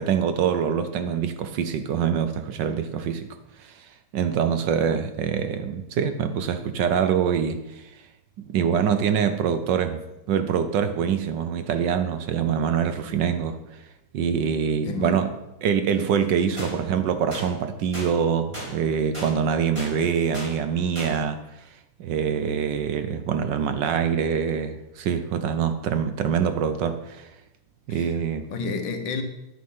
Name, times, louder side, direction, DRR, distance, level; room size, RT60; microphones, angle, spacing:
voice 1, 0.0-7.8 8.4-13.6 14.1-15.3 15.6-21.4 22.0-27.3 27.9-28.5, right 7 dB, 70° right, 9 dB, 1.2 m, -25 dB
voice 2, 14.8-15.2 16.5-16.8 27.9-28.2 28.5-29.2, left 5 dB, 65° left, 6 dB, 1.6 m, -31 dB
sound 1, 16.6-16.7 17.3-17.5 17.9-18.1 18.5-18.7 19.1-19.3 19.8-19.9 20.3-20.5 21.0-21.1, equal, 15° right, 3.9 m, -34 dB
9.9 x 7.5 x 5.6 m, 0.92 s
omnidirectional pair, 2.2 m